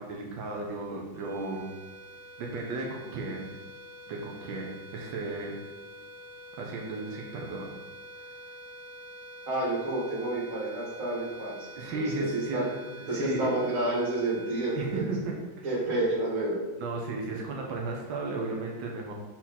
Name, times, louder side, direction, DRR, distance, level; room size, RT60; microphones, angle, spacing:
voice 1, 0.0-1.7 2.4-3.5 4.1-5.6 6.6-7.6 8.2-8.3 11.8-12.7 13.0-13.5 14.7-15.8 16.8-19.1, right 3 dB, 90° right, 0 dB, 1.6 m, -35 dB
sound 1, 1.1-15.7, equal, 65° right, 0.7 m, -47 dB
voice 2, 9.5-11.7 11.9-12.6 13.1-15.1 15.6-16.6 17.3-17.4, right 2 dB, 40° right, -6 dB, 2.4 m, -29 dB
6.0 x 4.1 x 4.2 m, 1.1 s
omnidirectional pair, 2.1 m